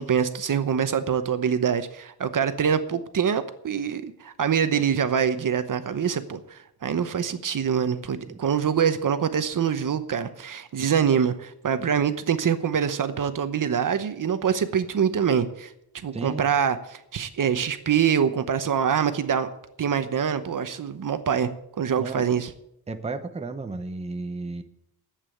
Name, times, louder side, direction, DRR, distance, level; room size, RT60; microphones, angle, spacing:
voice 1, 0.0-15.7 16.0-19.5 19.8-21.5 21.8-22.5, right 7 dB, 55° right, 11 dB, 0.9 m, -25 dB
voice 2, 16.1-16.5 22.0-22.2 22.9-24.6, right 3 dB, 15° right, 7 dB, 0.8 m, -33 dB
11.0 x 8.4 x 9.1 m, 0.76 s
wide cardioid pair, 180°, 39 cm